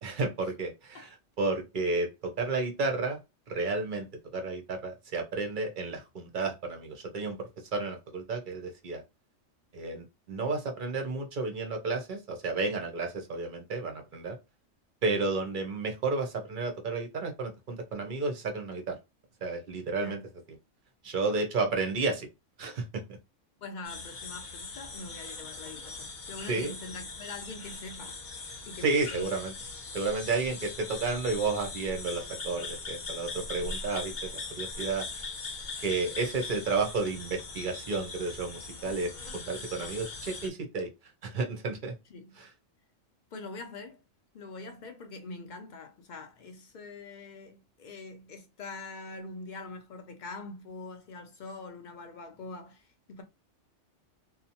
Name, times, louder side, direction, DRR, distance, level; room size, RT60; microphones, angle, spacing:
voice 1, 0.0-3.2 3.5-4.1 4.3-9.0 9.7-14.4 15.0-19.0 19.4-20.2 21.0-22.3 22.6-23.0 26.5-26.7 28.8-29.5 29.9-35.3 35.8-40.9 41.2-41.9 42.4-42.5, right 3 dB, 50° right, 0.6 m, -32 dB
voice 2, 23.6-28.2 28.7-29.3 42.1-42.3 43.3-44.0 44.3-53.2, left 3 dB, 70° left, 0.4 m, -44 dB
sound 1, 23.8-40.5, left 3 dB, 45° left, 0.8 m, -41 dB
2.7 x 2.0 x 2.8 m
omnidirectional pair, 1.3 m